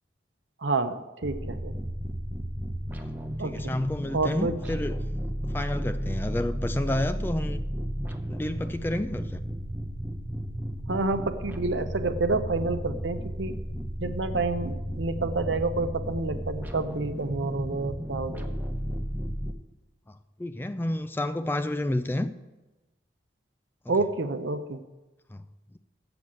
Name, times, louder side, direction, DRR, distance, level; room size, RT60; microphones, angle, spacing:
voice 1, 0.6-1.7 3.4-3.7 4.1-4.5 10.9-13.6 14.0-18.5 23.9-24.8, right 3 dB, 85° right, 9 dB, 0.8 m, -29 dB
time night mares bass, 1.2-19.5, equal, 10° right, 0.7 m, -33 dB
voice 2, 3.4-5.0 5.4-7.6 8.3-9.4 20.1-22.3 23.9-24.0 25.3-25.4, left 1 dB, 10° left, 11 dB, 0.3 m, -30 dB
7.9 x 7.0 x 7.5 m, 1.1 s
head